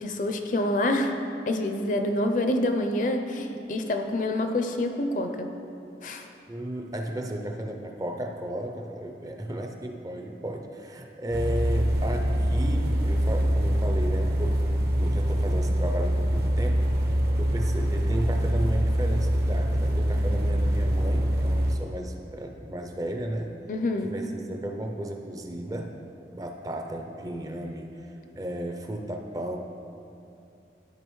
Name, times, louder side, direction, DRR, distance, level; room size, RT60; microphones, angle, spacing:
voice 1, 0.0-1.1 1.5-5.5 6.0-6.3 23.7-24.1, left 1 dB, 45° left, 5 dB, 0.5 m, -27 dB
voice 2, 6.5-16.9 17.4-23.6 24.0-26.0 26.3-29.6, right 1 dB, 20° right, 3 dB, 0.4 m, -34 dB
sound 1, 11.3-21.8, equal, 60° right, 0.7 m, -24 dB
12.0 x 4.9 x 3.1 m, 2.7 s
head